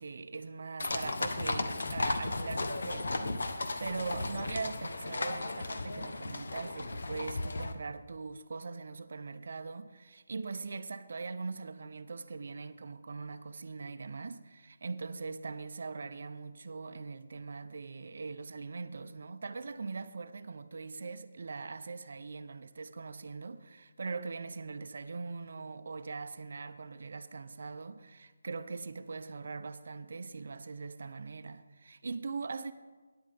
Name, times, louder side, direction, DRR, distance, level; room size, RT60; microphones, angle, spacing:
voice 1, 0.0-32.7, right 4 dB, 55° right, 0.6 m, -41 dB
sound 1, 0.8-7.7, left 2 dB, 70° left, 0.8 m, -35 dB
14.0 x 9.7 x 3.5 m
hypercardioid pair, 170°, 0 cm